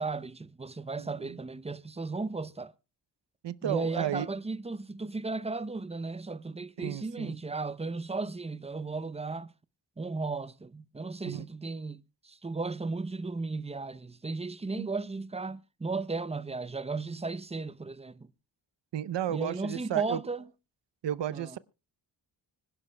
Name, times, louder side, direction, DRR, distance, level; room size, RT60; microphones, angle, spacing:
voice 1, 0.0-2.7 3.6-9.5 10.0-18.3 19.3-20.4 21.3-21.6, right 3 dB, 15° right, 0.6 m, -35 dB
voice 2, 1.0-1.4 3.4-4.3 6.8-7.4 11.2-11.5 14.7-14.9 18.9-20.2 21.0-21.6, right 10 dB, 85° right, 0.7 m, -33 dB
25.0 x 11.0 x 2.2 m
cardioid pair, 75°, 42 cm